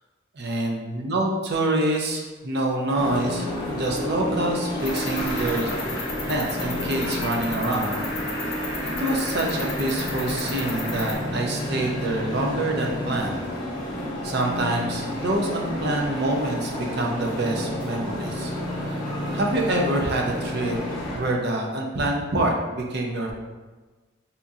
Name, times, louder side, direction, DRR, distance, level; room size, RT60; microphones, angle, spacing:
voice 1, 0.3-3.4 3.7-8.1 8.5-8.6 9.0-13.5 14.2-18.5 18.8-19.0 19.3-23.3, right 1 dB, 55° right, 0 dB, 0.5 m, -26 dB
sound 1, 2.9-21.2, left 1 dB, 20° left, 0.7 m, -30 dB
Cricket, 4.8-11.2, left 2 dB, 60° left, 0.9 m, -33 dB
4.3 x 2.6 x 2.4 m, 1.3 s
head